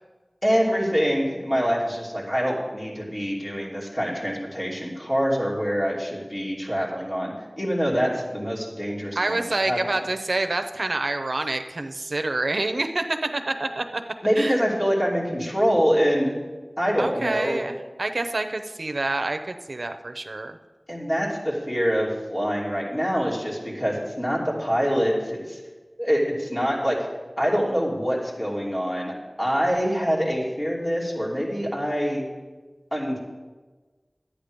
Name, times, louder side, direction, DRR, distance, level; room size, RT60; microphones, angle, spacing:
voice 1, 0.4-9.9 14.2-16.4 16.8-17.6 20.9-25.6 26.0-27.0 27.4-29.1 29.4-32.2 32.9-33.2, equal, 30° left, -4 dB, 2.9 m, -25 dB
voice 2, 9.1-14.0 14.4-14.6 17.0-20.6, right 2 dB, 75° right, 7 dB, 0.6 m, -27 dB
11.5 x 8.7 x 5.2 m, 1.3 s
wide cardioid pair, 50°, 0 cm